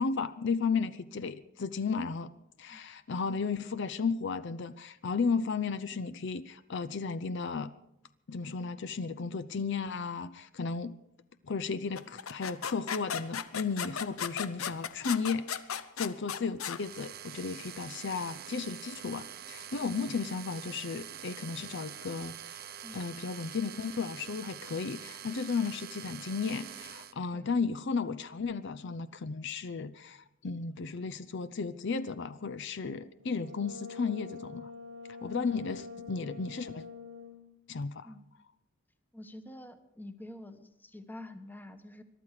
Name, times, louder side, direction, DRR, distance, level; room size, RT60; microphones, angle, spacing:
voice 1, 0.0-2.3 2.6-7.7 8.3-11.0 11.4-15.5 15.7-34.7 35.2-36.8 37.7-38.1, left 5 dB, 55° left, 14 dB, 0.5 m, -34 dB
sound 1, 12.0-16.8, left 7 dB, 90° left, 0.8 m, -36 dB
sound 2, 16.8-27.1, right 10 dB, 50° right, 0.8 m, -45 dB
Brass instrument, 33.2-37.6, left 4 dB, 75° right, 1.5 m, -46 dB
voice 2, 35.3-35.6 38.0-38.2 39.1-42.0, left 1 dB, 10° left, 8 dB, 1.1 m, -47 dB
22.5 x 12.0 x 4.9 m, 0.82 s
head